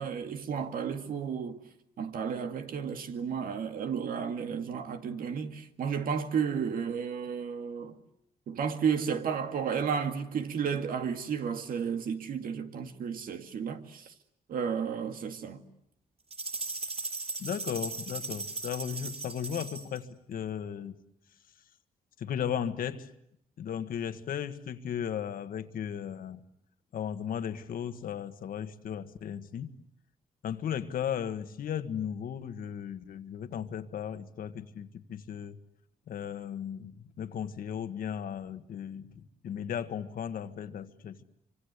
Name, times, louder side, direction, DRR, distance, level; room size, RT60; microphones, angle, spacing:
voice 1, 0.0-1.6 2.0-8.0 8.5-14.1 14.5-15.6, right 7 dB, 75° right, 2.1 m, -32 dB
sound 1, 16.3-20.0, right 3 dB, 45° right, 7.0 m, -37 dB
voice 2, 17.4-20.9 22.2-23.1 23.6-26.4 26.9-29.8 30.4-35.6 36.1-41.2, left 8 dB, 75° left, 1.6 m, -36 dB
27.0 x 25.5 x 8.2 m
cardioid pair, 100°, 15 cm